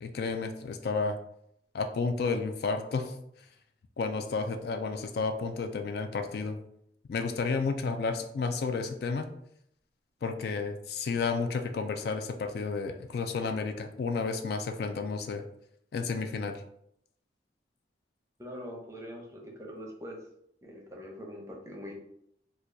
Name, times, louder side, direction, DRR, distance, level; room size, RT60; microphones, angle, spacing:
voice 1, 0.0-1.2 1.7-3.1 4.0-6.6 7.1-9.3 10.2-15.4 15.9-16.6, left 4 dB, 60° left, 7 dB, 0.3 m, -31 dB
voice 2, 18.4-20.2 20.6-22.0, equal, 15° right, 0 dB, 0.6 m, -43 dB
4.4 x 2.3 x 2.6 m, 0.73 s
head